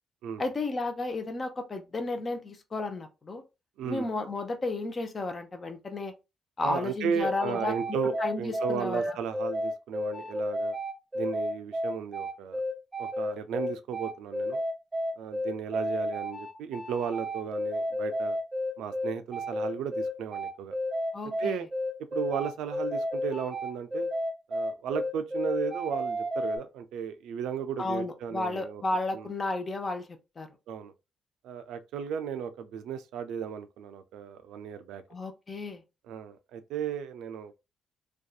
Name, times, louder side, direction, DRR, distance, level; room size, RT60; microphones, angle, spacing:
voice 1, 0.4-3.4 3.9-6.1 6.6-9.2 21.1-21.6 27.8-30.1 30.4-30.5 35.1-35.8, left 2 dB, 35° left, 0.5 m, -33 dB
voice 2, 3.8-4.1 6.6-10.8 11.1-12.6 13.0-14.6 15.2-18.4 18.8-20.7 21.4-21.7 22.1-24.1 24.5-28.8 29.1-29.3 30.7-30.9 31.4-35.0 36.0-37.5, right 7 dB, 85° right, 0.3 m, -35 dB
sound 1, 7.2-26.6, left 1 dB, 10° right, 1.0 m, -32 dB
2.6 x 2.2 x 2.3 m
cardioid pair, 90°, 0 cm